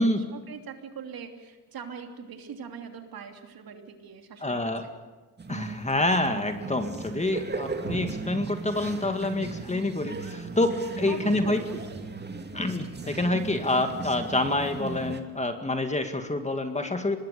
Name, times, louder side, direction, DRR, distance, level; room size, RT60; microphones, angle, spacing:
voice 1, 0.0-4.9 11.1-12.1, right 6 dB, 50° right, 5 dB, 3.2 m, -42 dB
voice 2, 4.4-4.9 5.5-11.6 12.5-17.2, left 2 dB, 15° left, 7 dB, 2.1 m, -27 dB
sound 1, 5.4-15.2, right 4 dB, 20° right, 2.5 m, -37 dB
25.0 x 20.5 x 7.0 m, 1.3 s
supercardioid pair, 80°, 47 cm